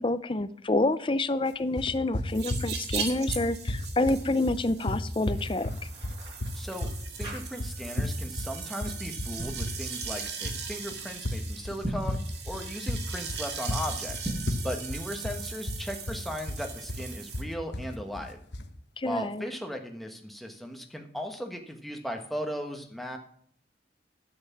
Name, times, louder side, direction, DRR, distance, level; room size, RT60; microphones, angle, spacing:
voice 1, 0.0-5.7 19.0-19.5, left 2 dB, 30° left, 13 dB, 0.5 m, -28 dB
sound 1, 1.8-18.7, left 1 dB, 75° left, 1.2 m, -34 dB
sound 2, 2.3-17.4, right 6 dB, 70° right, 2.1 m, -39 dB
sound 3, 5.1-8.0 8.3-8.6 9.2-9.7 11.7-12.2 14.1-14.6, right 1 dB, 25° right, 5.5 m, -39 dB
voice 2, 6.5-6.9 7.2-12.2 12.4-14.3 14.6-18.4 19.0-23.2, equal, ahead, 3 dB, 1.3 m, -37 dB
10.5 x 8.1 x 7.2 m, 0.63 s
head